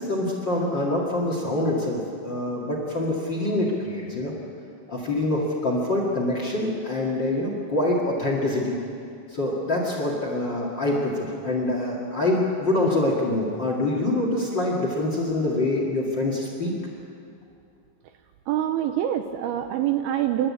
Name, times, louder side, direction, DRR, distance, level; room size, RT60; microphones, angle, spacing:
voice 1, 0.0-4.3 4.9-8.8 9.3-16.7, left 1 dB, 35° left, 0 dB, 1.9 m, -25 dB
voice 2, 18.5-20.5, right 11 dB, 80° right, 7 dB, 2.3 m, -25 dB
28.0 x 12.0 x 8.5 m, 2.5 s
omnidirectional pair, 5.0 m